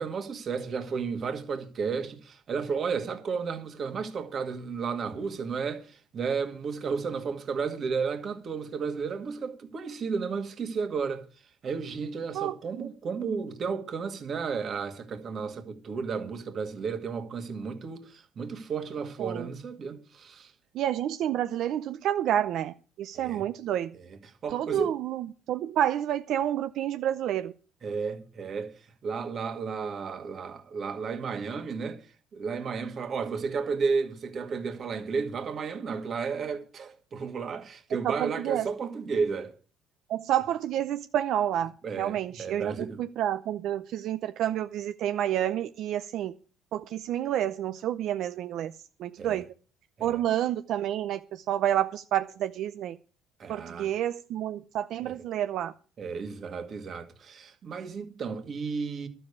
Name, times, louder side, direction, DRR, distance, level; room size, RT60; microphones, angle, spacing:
voice 1, 0.0-11.3 11.6-20.5 23.1-23.4 23.9-24.9 27.8-28.7 29.0-32.1 32.3-39.5 41.8-43.0 49.2-49.4 50.0-50.2 53.4-53.9 55.0-55.2 56.0-59.1, right 5 dB, 40° right, 2.0 m, -33 dB
voice 2, 12.3-12.9 19.2-19.5 20.7-23.9 24.5-27.5 38.0-38.7 40.1-46.3 46.7-48.7 49.0-49.4 50.0-53.0 53.5-55.7, right 11 dB, 60° right, 0.6 m, -29 dB
12.0 x 7.0 x 8.4 m
cardioid pair, 130°, 0 cm